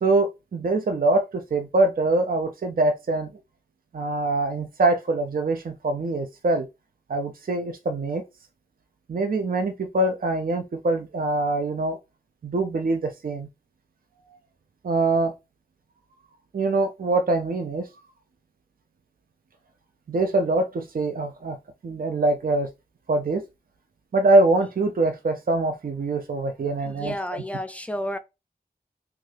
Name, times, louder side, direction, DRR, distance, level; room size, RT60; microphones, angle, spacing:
voice 1, 0.0-3.3 3.9-6.7 7.1-8.2 9.1-12.0 12.4-13.5 14.8-15.3 16.5-17.9 20.1-21.6 21.8-22.7 23.1-23.4 24.1-27.1, right 2 dB, 60° right, 0.4 m, -23 dB
voice 2, 26.8-28.2, equal, 10° left, 0.4 m, -31 dB
2.6 x 2.4 x 3.2 m
wide cardioid pair, 45°, 16 cm